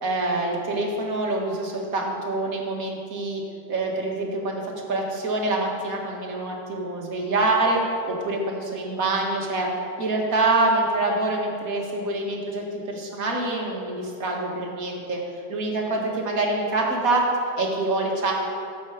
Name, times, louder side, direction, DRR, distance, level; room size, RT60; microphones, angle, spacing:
voice 1, 0.0-3.4 3.7-4.6 4.9-9.7 10.0-15.2 15.5-17.3 17.6-18.3, right 2 dB, 50° right, -1 dB, 2.1 m, -25 dB
16.5 x 7.4 x 5.0 m, 2.6 s
omnidirectional pair, 2.0 m